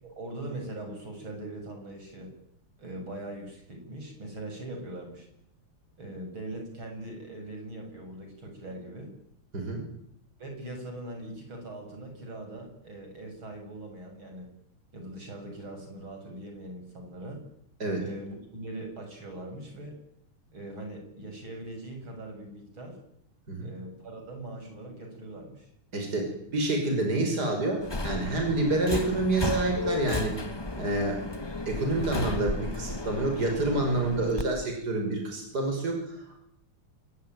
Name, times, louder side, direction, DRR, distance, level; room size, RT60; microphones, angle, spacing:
voice 1, 0.0-2.3 2.8-5.3 6.0-9.1 10.4-14.5 14.9-17.4 18.0-20.0 20.5-23.0 23.6-25.7, right 1 dB, 65° right, 4 dB, 7.4 m, -41 dB
voice 2, 25.9-30.4 30.8-31.2 31.7-36.4, right 2 dB, 45° right, 3 dB, 6.4 m, -28 dB
Subway metro underground, 27.8-34.4, left 2 dB, 15° left, 1.0 m, -33 dB
27.0 x 21.0 x 9.3 m, 0.75 s
omnidirectional pair, 2.4 m